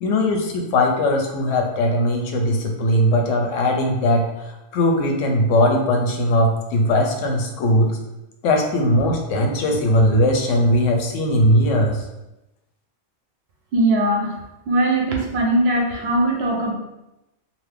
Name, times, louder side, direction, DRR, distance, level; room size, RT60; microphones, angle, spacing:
voice 1, 0.0-8.0 8.4-12.0, left 1 dB, 85° left, 2 dB, 0.9 m, -19 dB
voice 2, 13.7-14.4 14.7-16.7, right 1 dB, 65° right, 0 dB, 0.8 m, -20 dB
2.6 x 2.5 x 3.3 m, 0.93 s
omnidirectional pair, 1.3 m